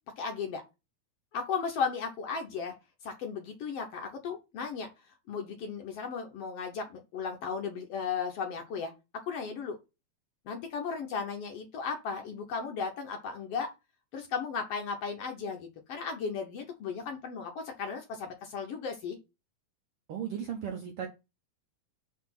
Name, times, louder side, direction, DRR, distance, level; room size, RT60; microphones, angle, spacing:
voice 1, 0.2-0.6 1.3-2.7 3.0-4.9 5.3-8.9 9.3-9.8 10.5-13.7 14.1-19.2, left 5 dB, 70° left, 1.6 m, -35 dB
voice 2, 20.1-21.1, right 8 dB, 70° right, 1.4 m, -36 dB
5.6 x 4.2 x 5.7 m
omnidirectional pair, 3.5 m